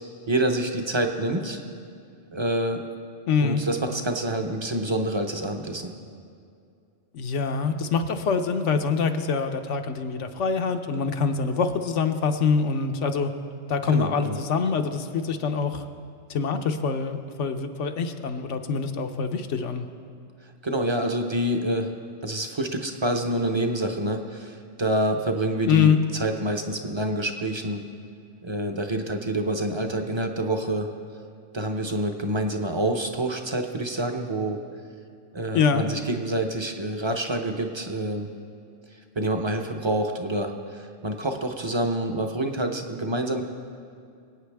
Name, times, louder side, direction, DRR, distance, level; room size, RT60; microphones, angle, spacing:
voice 1, 0.3-1.6 2.3-2.9 3.4-5.9 13.9-14.4 20.6-21.9 22.2-27.9 28.4-30.9 31.5-34.6 35.3-38.3 39.2-43.4, right 1 dB, 25° right, 4 dB, 0.6 m, -27 dB
voice 2, 3.3-3.6 7.1-13.3 13.7-15.8 16.3-19.9 25.7-26.0 35.5-35.8, left 5 dB, 70° left, 7 dB, 1.1 m, -25 dB
24.5 x 8.8 x 3.4 m, 2.4 s
omnidirectional pair, 1.3 m